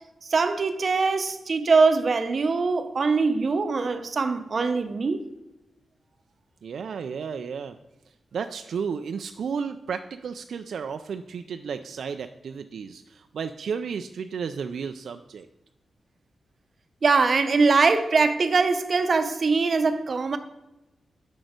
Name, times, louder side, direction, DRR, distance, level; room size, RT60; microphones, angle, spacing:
voice 1, 0.3-5.2 17.0-20.4, right 4 dB, 45° right, 0.7 m, -22 dB
voice 2, 6.6-7.8 8.3-15.5, right 6 dB, 75° right, 0.3 m, -33 dB
6.1 x 6.0 x 5.1 m
wide cardioid pair, 115°, 0 cm